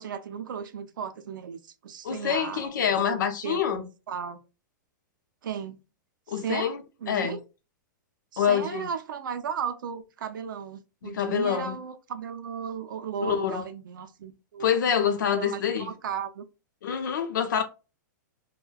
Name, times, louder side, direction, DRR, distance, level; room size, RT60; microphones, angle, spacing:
voice 1, 0.0-4.4 5.4-5.8 6.3-6.7 7.0-7.4 8.3-14.7 15.3-16.5, right 7 dB, 90° right, 0.4 m, -35 dB
voice 2, 2.0-3.8 6.3-6.8 7.1-7.4 8.4-8.8 11.0-11.8 13.2-13.6 14.6-15.9 16.8-17.6, left 8 dB, 70° left, 0.6 m, -26 dB
2.5 x 2.1 x 2.3 m
supercardioid pair, 175°, 11 cm